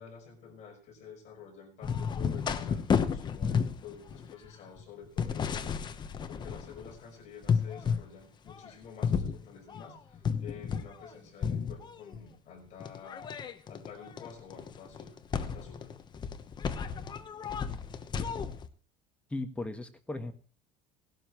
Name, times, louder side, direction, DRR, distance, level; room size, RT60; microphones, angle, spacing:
voice 1, 0.0-5.8 6.3-13.3 13.7-15.9, left 6 dB, 40° left, 1 dB, 5.4 m, -50 dB
sound 1, 1.8-7.0 7.4-8.1 8.5-11.1 11.4-12.2 12.8-18.7, left 6 dB, 25° left, 1.0 m, -33 dB
voice 2, 19.3-20.3, left 2 dB, 5° left, 6 dB, 1.4 m, -36 dB
19.0 x 12.0 x 3.1 m, 0.41 s
cardioid pair, 155°, 18 cm